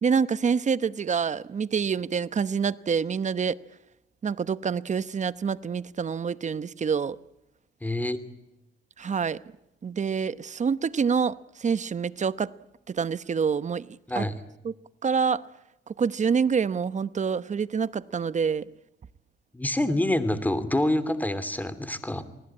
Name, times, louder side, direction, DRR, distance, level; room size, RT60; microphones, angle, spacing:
voice 1, 0.0-3.6 4.2-7.2 9.0-9.4 9.8-12.5 12.9-13.9 14.2-14.3 14.6-14.7 15.0-15.4 16.0-18.7, right 6 dB, 35° right, 0.9 m, -26 dB
voice 2, 7.8-8.2 14.1-14.3 19.5-22.2, left 1 dB, 10° left, 2.9 m, -26 dB
28.0 x 19.5 x 8.7 m
cardioid pair, 90°, 20 cm